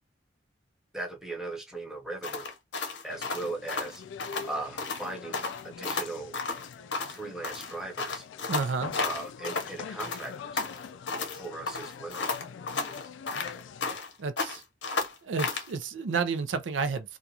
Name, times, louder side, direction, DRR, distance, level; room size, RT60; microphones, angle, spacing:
voice 1, 0.9-2.5 3.0-4.0 4.5-6.4 7.1-8.2 9.0-10.6 11.4-12.3, right 2 dB, 5° right, 0.7 m, -38 dB
sound 1, 2.2-4.5 4.8-5.1 5.3-7.2 7.4-9.7 10.0-11.4 11.7-14.1 14.4-15.7, left 4 dB, 70° left, 0.8 m, -33 dB
sound 2, 3.1-14.0, left 6 dB, 90° left, 0.3 m, -44 dB
voice 2, 8.5-9.0 14.2-14.6 15.2-17.2, right 5 dB, 85° right, 0.5 m, -31 dB
2.4 x 2.3 x 2.7 m
head